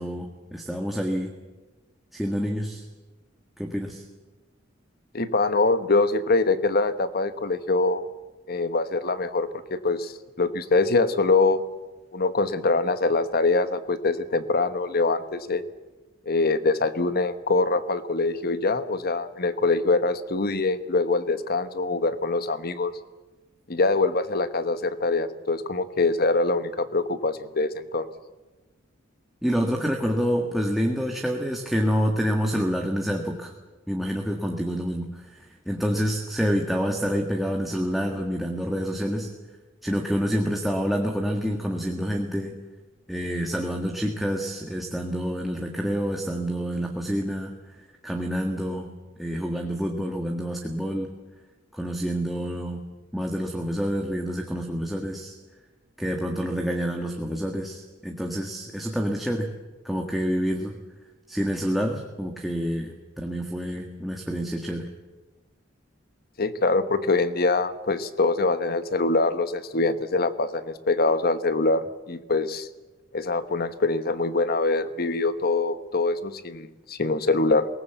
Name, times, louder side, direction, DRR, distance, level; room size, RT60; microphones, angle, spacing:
voice 1, 0.0-1.3 2.1-2.8 3.6-4.0 29.4-33.5 33.9-39.3 39.8-42.6 43.1-48.9 49.2-51.1 51.7-52.8 53.1-55.3 56.0-59.5 59.8-60.8 61.3-64.9, equal, ahead, 1 dB, 1.6 m, -28 dB
voice 2, 5.1-8.0 8.5-11.6 12.1-15.6 16.3-22.9 23.7-28.1 66.4-72.7 73.1-77.7, left 3 dB, 50° left, 12 dB, 1.2 m, -24 dB
22.0 x 19.0 x 8.2 m, 1.2 s
head